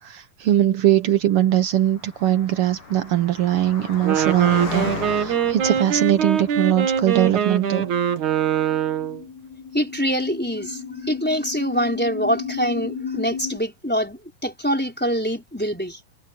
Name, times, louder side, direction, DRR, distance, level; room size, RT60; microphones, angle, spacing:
voice 1, 0.0-7.9, right 12 dB, 85° right, 1.2 m, -21 dB
Car passing by, 1.6-7.5, left 3 dB, 85° left, 9.4 m, -35 dB
Wind instrument woodwind instrument, 3.9-9.2, right 8 dB, 65° right, 3.3 m, -23 dB
sound 1, 7.6-13.6, left 6 dB, 65° left, 2.7 m, -36 dB
voice 2, 9.7-16.0, equal, 5° left, 3.7 m, -24 dB
omnidirectional pair, 3.7 m